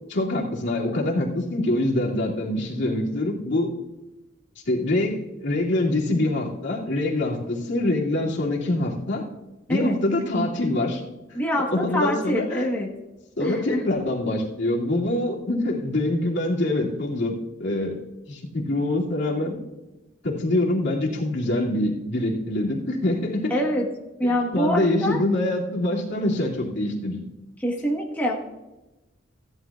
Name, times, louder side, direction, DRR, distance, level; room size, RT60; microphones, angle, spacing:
voice 1, 0.1-3.7 4.7-9.2 9.7-11.0 11.3-12.7 13.4-17.3 17.6-18.0 18.3-19.6 20.2-23.8 24.2-27.2, left 1 dB, 65° left, -3 dB, 2.4 m, -25 dB
voice 2, 11.3-12.9 13.4-13.8 23.5-23.8 24.2-25.2 27.6-28.4, equal, 10° left, -2 dB, 1.2 m, -25 dB
16.5 x 11.5 x 2.4 m, 1.1 s
head